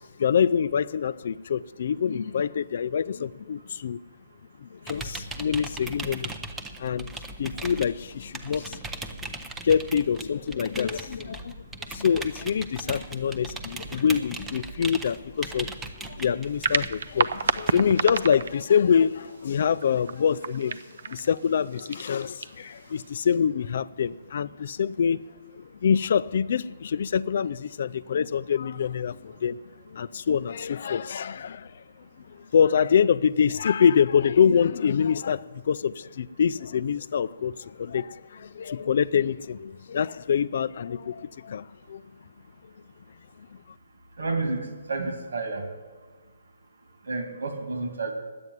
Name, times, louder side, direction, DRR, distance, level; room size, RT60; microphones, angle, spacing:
voice 1, 0.2-4.0 4.6-6.3 6.8-7.1 7.4-8.8 9.6-25.2 25.5-29.6 29.9-42.0 43.4-43.5, left 7 dB, 50° left, 0.4 m, -25 dB
sound 1, 4.9-18.5, right 3 dB, 5° right, 0.6 m, -39 dB
East Finchley Bats, 16.4-23.4, right 5 dB, 65° right, 0.6 m, -32 dB
voice 2, 44.2-45.6 47.1-48.1, right 3 dB, 85° right, 2.3 m, -30 dB
10.5 x 8.6 x 9.4 m
hypercardioid pair, 170°, 0 cm